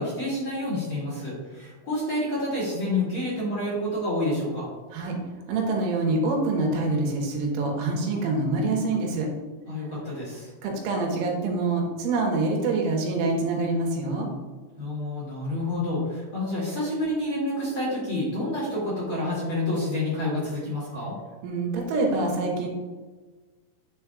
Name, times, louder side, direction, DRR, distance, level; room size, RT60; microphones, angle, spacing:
voice 1, 0.0-4.7 9.7-10.5 14.8-21.1, left 1 dB, 35° left, -8 dB, 2.5 m, -28 dB
voice 2, 5.5-9.3 10.6-14.3 21.4-22.7, right 3 dB, 90° right, 0 dB, 3.8 m, -25 dB
9.0 x 7.3 x 2.4 m, 1.3 s
omnidirectional pair, 5.6 m